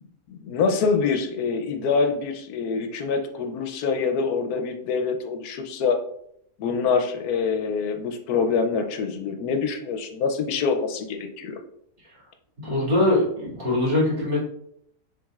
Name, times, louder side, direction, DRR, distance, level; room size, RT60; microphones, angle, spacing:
voice 1, 0.3-6.0 6.6-11.6, left 5 dB, 80° left, 6 dB, 1.1 m, -25 dB
voice 2, 12.6-14.4, left 1 dB, 40° right, -7 dB, 2.3 m, -22 dB
7.1 x 3.2 x 2.3 m, 0.71 s
omnidirectional pair, 1.6 m